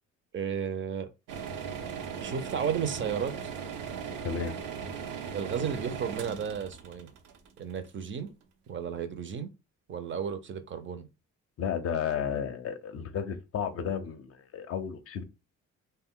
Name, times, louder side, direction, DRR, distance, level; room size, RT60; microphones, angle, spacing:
voice 1, 0.3-1.1 2.2-3.5 5.3-7.1 7.6-8.3 8.7-9.5 9.9-11.1, right 7 dB, 40° right, 0.5 m, -33 dB
sound 1, 1.3-8.2, right 6 dB, 90° right, 0.6 m, -38 dB
voice 2, 4.2-4.6 11.6-15.2, left 7 dB, 50° left, 0.5 m, -33 dB
2.2 x 2.1 x 3.6 m
cardioid pair, 90°, 30 cm